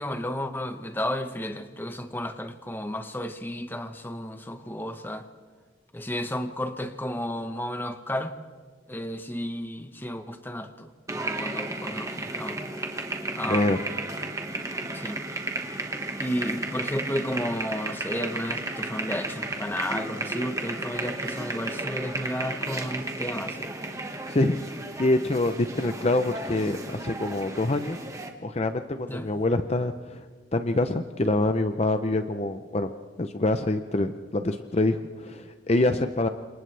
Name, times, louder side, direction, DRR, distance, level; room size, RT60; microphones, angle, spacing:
voice 1, 0.0-5.3 5.9-8.3 8.9-12.6 13.3-13.9 14.9-15.2 16.2-23.7 29.1-29.3, equal, 10° left, 8 dB, 1.0 m, -32 dB
sound 1, 11.1-28.3, right 2 dB, 15° right, 1.6 m, -34 dB
voice 2, 13.5-13.8 24.3-28.0 28.4-30.3 30.5-32.9 33.2-36.3, left 2 dB, 35° left, 8 dB, 0.6 m, -26 dB
29.5 x 26.5 x 3.4 m, 1.5 s
head